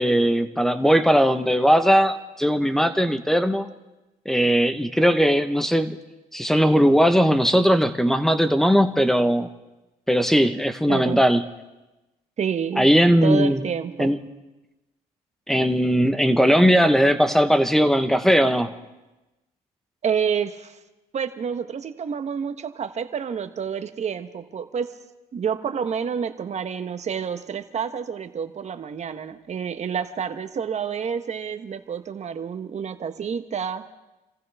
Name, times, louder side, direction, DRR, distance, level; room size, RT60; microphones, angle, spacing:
voice 1, 0.0-3.7 4.2-6.0 6.3-9.5 10.1-11.4 12.8-13.6 14.0-14.2 15.5-18.7, equal, ahead, 9 dB, 1.1 m, -19 dB
voice 2, 10.9-11.2 12.4-12.9 13.2-14.1 20.0-20.8 21.1-24.9 25.3-33.9, right 7 dB, 45° right, 9 dB, 1.2 m, -29 dB
27.0 x 15.0 x 3.5 m, 1.0 s
cardioid pair, 85°, 16 cm